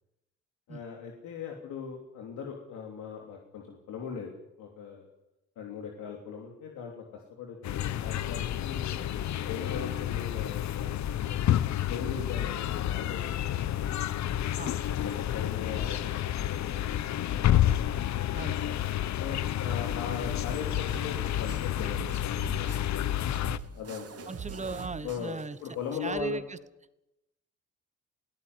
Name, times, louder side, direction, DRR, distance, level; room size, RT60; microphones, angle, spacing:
voice 1, 0.7-4.3 4.6-5.0 5.5-9.0 9.5-11.4 11.9-13.7 14.9-17.4 18.9-23.1 23.7-24.3 25.0-25.3 25.6-26.4, left 6 dB, 85° left, 1 dB, 3.3 m, -40 dB
sound 1, 7.6-23.6, left 11 dB, 65° left, 1.0 m, -30 dB
sound 2, 20.2-26.2, right 6 dB, 50° right, 2.4 m, -44 dB
voice 2, 24.3-25.6 26.0-26.6, right 4 dB, 25° right, 15 dB, 1.1 m, -37 dB
21.0 x 16.5 x 9.8 m, 0.92 s
cardioid pair, 90°, 30 cm